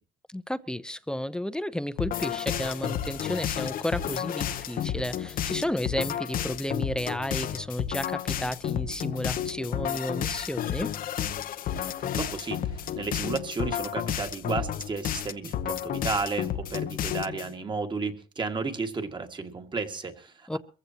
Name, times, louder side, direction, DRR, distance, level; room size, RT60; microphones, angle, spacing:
voice 1, 0.3-10.9 20.5-20.6, left 1 dB, 5° left, 0.7 m, -32 dB
sound 1, 2.0-17.5, left 10 dB, 60° left, 0.8 m, -32 dB
voice 2, 12.0-20.6, right 4 dB, 30° right, 1.9 m, -33 dB
23.0 x 15.0 x 2.9 m
cardioid pair, 115°, 16 cm